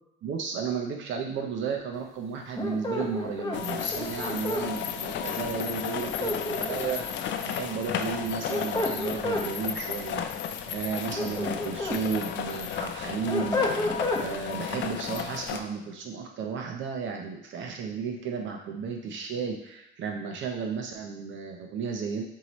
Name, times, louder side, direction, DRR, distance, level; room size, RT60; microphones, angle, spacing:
voice 1, 0.2-10.2 10.7-13.9 14.2-22.2, right 6 dB, 70° right, 2 dB, 0.6 m, -33 dB
sound 1, 2.6-4.7 5.9-7.1 8.2-9.5 10.9-12.0 12.5-14.3, left 2 dB, 20° left, 0.7 m, -30 dB
sound 2, 3.5-15.6, left 8 dB, 65° left, 0.4 m, -34 dB
4.6 x 2.7 x 3.0 m, 0.83 s
cardioid pair, 90°, 20 cm